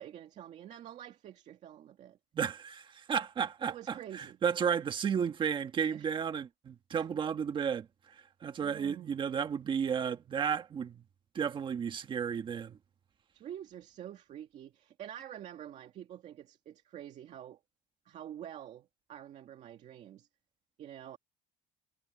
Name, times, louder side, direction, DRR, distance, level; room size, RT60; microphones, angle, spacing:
voice 1, 0.0-2.2 3.7-4.4 5.9-6.1 7.0-7.1 8.6-9.2 13.3-17.6 18.1-20.3 20.8-21.2, right 10 dB, 45° right, 2.2 m, -47 dB
voice 2, 2.3-11.0 11.3-12.8, right 7 dB, 30° right, 1.5 m, -33 dB
cardioid pair, 165°, 16 cm